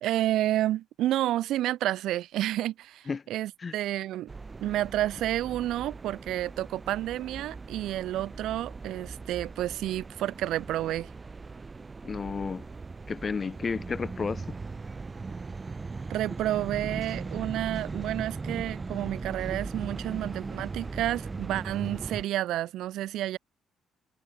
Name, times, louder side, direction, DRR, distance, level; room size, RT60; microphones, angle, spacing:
voice 1, 0.0-4.3 4.6-11.1 16.1-23.4, right 14 dB, 80° right, 1.0 m, -30 dB
sound 1, 4.3-22.2, right 4 dB, 25° right, 2.0 m, -39 dB
voice 2, 12.0-12.7 13.1-14.5, left 5 dB, 35° left, 0.9 m, -32 dB
cardioid pair, 105°, 0 cm